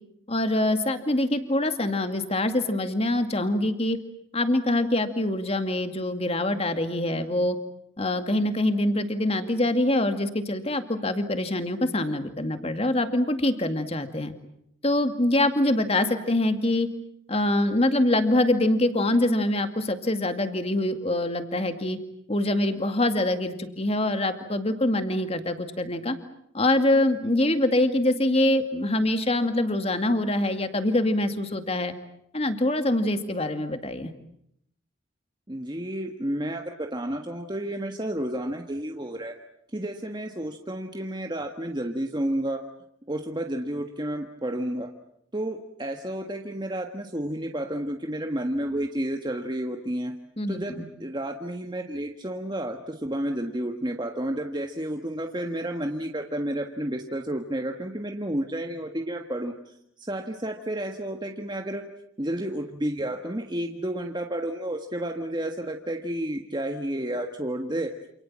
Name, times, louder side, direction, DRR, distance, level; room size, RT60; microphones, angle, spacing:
voice 1, 0.3-4.0 4.3-7.6 8.0-14.3 14.8-16.9 17.3-22.0 22.3-26.2 26.5-31.9 32.3-34.1 50.4-50.9, left 1 dB, 30° left, 8 dB, 2.2 m, -24 dB
voice 2, 35.5-39.4 39.7-42.7 43.1-44.9 45.3-50.1 50.5-61.8 62.2-67.9, right 1 dB, 20° right, 4 dB, 1.5 m, -31 dB
28.5 x 28.0 x 7.5 m, 0.74 s
head